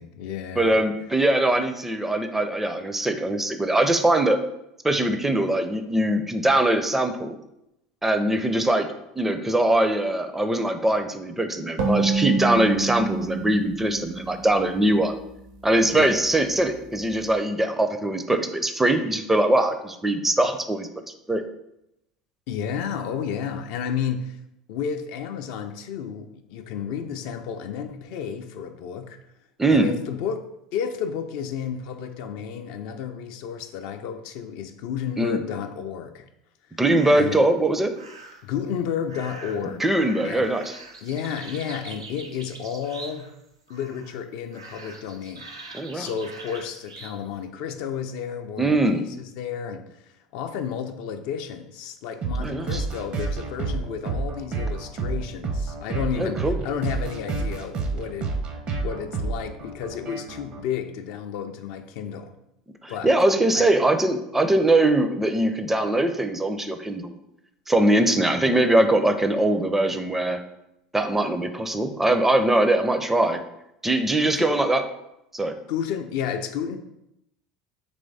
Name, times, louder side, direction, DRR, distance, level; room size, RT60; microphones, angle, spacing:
voice 1, 0.0-0.8 15.9-16.2 22.5-24.4 24.7-29.2 29.7-30.4 30.7-36.2 37.2-37.4 38.4-39.8 40.2-40.5 41.0-43.3 43.7-45.5 45.9-58.3 58.8-62.3 62.9-63.1 63.5-63.7 68.0-68.1 74.2-74.5 75.7-76.8, left 7 dB, 65° left, 6 dB, 0.4 m, -32 dB
voice 2, 0.6-4.4 4.8-7.4 8.0-8.9 9.2-15.1 15.6-20.9 21.3-21.4 29.6-29.9 35.2-35.4 36.8-37.9 39.7-40.8 45.7-46.1 48.6-49.0 52.4-52.8 56.2-56.6 62.8-67.2 67.7-70.4 70.9-73.4 73.8-74.8 75.3-75.6, right 1 dB, 10° right, 8 dB, 0.4 m, -22 dB
sound 1, 11.8-15.3, right 4 dB, 75° right, 0.9 m, -27 dB
sound 2, 36.9-37.5 37.9-38.5 39.1-43.4 43.7-44.2 44.5-47.2, right 3 dB, 90° right, 0.5 m, -43 dB
sound 3, 52.2-60.6, right 3 dB, 50° right, 0.7 m, -30 dB
3.4 x 3.1 x 4.0 m, 0.84 s
hypercardioid pair, 75°, 2 cm